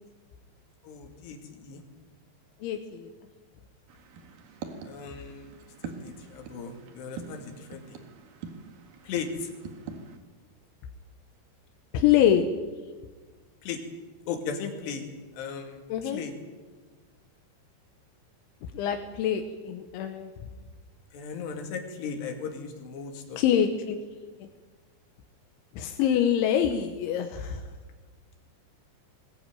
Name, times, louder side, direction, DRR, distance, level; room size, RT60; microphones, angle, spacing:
voice 1, 0.8-1.8 4.9-5.5 5.8-8.0 9.0-9.5 13.6-13.8 14.3-15.1 15.3-16.3 21.1-23.4, left 6 dB, 70° left, 4 dB, 4.4 m, -37 dB
voice 2, 2.6-3.1 11.9-12.5 15.9-16.2 18.7-20.3 23.4-24.0 24.4-24.5 25.8-27.6, left 9 dB, 85° left, 5 dB, 3.5 m, -25 dB
sound 1, 3.9-10.2, right 5 dB, 55° right, 3.1 m, -44 dB
20.0 x 19.5 x 9.2 m, 1.3 s
omnidirectional pair, 5.3 m